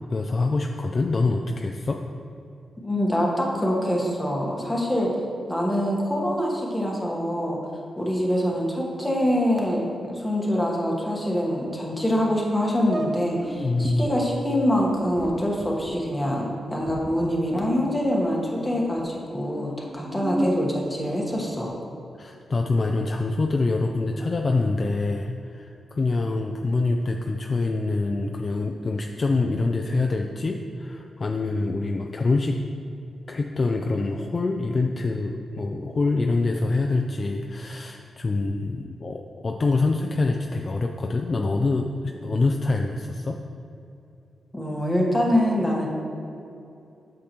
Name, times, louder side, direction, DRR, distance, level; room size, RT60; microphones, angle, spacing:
voice 1, 0.1-2.0 13.6-14.1 22.2-32.6 33.3-43.4, left 3 dB, 35° left, 2 dB, 0.3 m, -25 dB
voice 2, 2.8-5.1 5.5-7.6 8.0-21.8 44.5-45.9, equal, 5° left, -3 dB, 1.2 m, -25 dB
sound 1, 12.3-12.4 12.8-14.0 14.6-18.1 18.4-19.1 19.7-21.7, right 1 dB, 40° right, 0.7 m, -35 dB
8.4 x 6.5 x 2.9 m, 2.6 s
wide cardioid pair, 135°, 0 cm